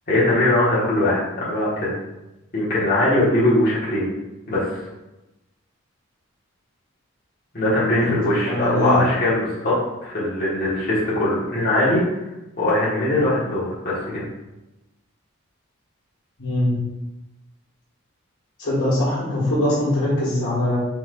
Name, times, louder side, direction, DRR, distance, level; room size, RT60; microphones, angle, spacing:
voice 1, 0.1-1.9 2.5-4.1 4.5-4.7 7.5-9.7 10.0-12.0 12.6-14.2, left 1 dB, 45° left, -9 dB, 1.4 m, -21 dB
voice 2, 8.4-9.0 16.4-16.8 18.6-20.8, left 1 dB, 90° left, -10 dB, 1.5 m, -22 dB
4.5 x 4.2 x 2.4 m, 0.98 s
head